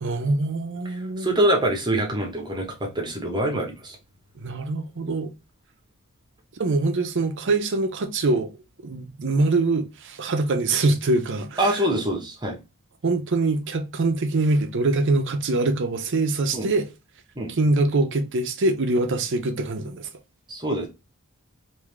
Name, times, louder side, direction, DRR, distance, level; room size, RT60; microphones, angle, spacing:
voice 1, 0.0-1.4 4.4-5.3 6.6-8.5 8.8-11.8 13.0-16.9 17.6-20.1, right 2 dB, 55° right, 0.6 m, -24 dB
voice 2, 1.2-4.0 11.6-12.6 16.5-16.7 17.3-17.5 20.5-20.9, right 1 dB, 20° right, 1.0 m, -24 dB
3.6 x 2.6 x 3.2 m
head